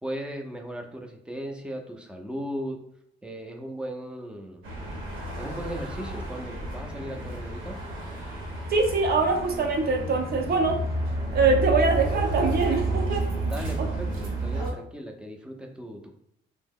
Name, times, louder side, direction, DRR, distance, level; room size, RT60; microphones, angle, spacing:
voice 1, 0.0-2.8 3.2-4.6 5.4-7.8 13.4-16.1, equal, 5° right, 2 dB, 0.5 m, -37 dB
sound 1, 4.6-14.7, right 1 dB, 85° right, 0.9 m, -31 dB
voice 2, 8.7-10.9 11.3-13.3 13.8-13.9, right 4 dB, 50° right, 3 dB, 0.7 m, -23 dB
2.7 x 2.1 x 3.6 m, 0.74 s
cardioid pair, 90°, 20 cm